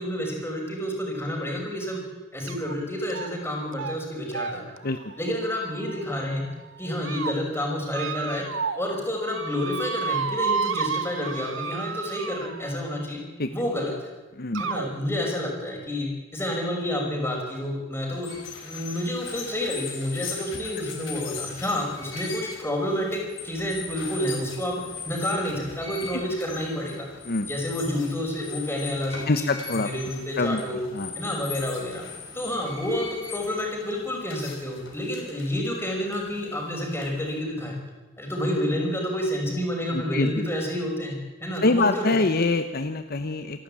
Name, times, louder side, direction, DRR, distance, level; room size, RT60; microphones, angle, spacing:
voice 1, 0.0-2.0 2.3-4.7 5.2-6.5 6.8-8.5 8.7-13.2 13.5-13.9 14.6-18.3 18.6-27.1 27.5-30.8 31.2-32.0 32.3-37.8 38.2-42.1, left 1 dB, 10° left, 0 dB, 5.8 m, -29 dB
sound 1, 2.5-2.7 3.1-3.5 3.7-4.0 4.3-6.2 6.8-7.3 7.9-8.9 9.2-12.8 13.8-13.9 14.6-14.9, right 6 dB, 75° right, 1.0 m, -31 dB
sound 2, 18.1-37.4, left 5 dB, 75° left, 4.5 m, -40 dB
voice 2, 29.3-29.9 30.4-30.6 30.9-31.1 39.9-40.4 41.6-43.6, left 2 dB, 55° left, 9 dB, 1.0 m, -25 dB
27.0 x 12.0 x 8.8 m, 1.1 s
head